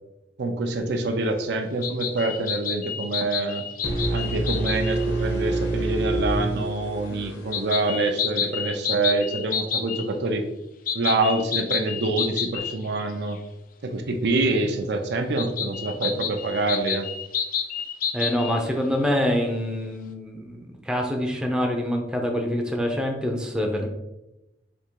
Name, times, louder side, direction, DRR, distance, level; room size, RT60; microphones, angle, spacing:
voice 1, 0.4-3.7 4.1-10.5 10.9-13.4 13.8-17.1, right 2 dB, 65° right, 5 dB, 0.5 m, -26 dB
sound 1, 1.8-5.1 7.5-10.0 10.9-13.0 13.3-13.4 15.4-18.6, left 7 dB, 50° left, 0.4 m, -29 dB
sound 2, 3.8-7.7, right 2 dB, 70° left, 1.2 m, -27 dB
voice 2, 18.1-23.9, equal, 5° right, 2 dB, 0.5 m, -26 dB
3.5 x 2.8 x 4.5 m, 0.94 s
head